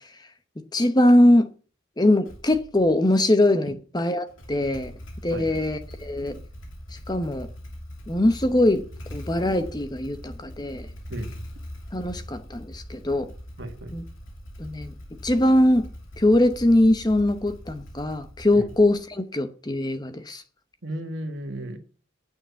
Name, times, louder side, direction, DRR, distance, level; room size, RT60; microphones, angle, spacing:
voice 1, 0.7-1.5 2.0-4.9 5.2-6.4 7.1-7.5 8.1-8.8 9.1-10.9 11.9-13.3 13.9-14.0 14.6-14.9 15.2-15.9 16.2-20.4, left 1 dB, 20° left, 0.9 m, -21 dB
Motorcycle / Engine starting, 2.2-2.9 4.3-19.2, equal, 75° left, 2.7 m, -41 dB
voice 2, 5.3-5.7 11.1-11.3 13.6-13.9 18.5-18.7 20.8-21.8, right 1 dB, 65° right, 1.8 m, -34 dB
9.0 x 6.6 x 8.1 m
head